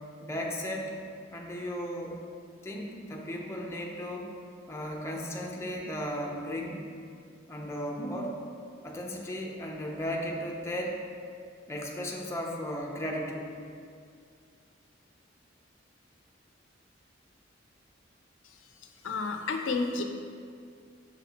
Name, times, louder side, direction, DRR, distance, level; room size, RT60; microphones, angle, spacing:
voice 1, 0.2-1.0 1.3-2.3 2.6-4.3 4.7-6.8 7.5-8.4 8.8-11.0 11.7-13.5, equal, 15° left, -1 dB, 0.6 m, -35 dB
voice 2, 19.0-20.0, left 3 dB, 85° left, 5 dB, 0.5 m, -30 dB
6.4 x 4.2 x 4.1 m, 2.3 s
head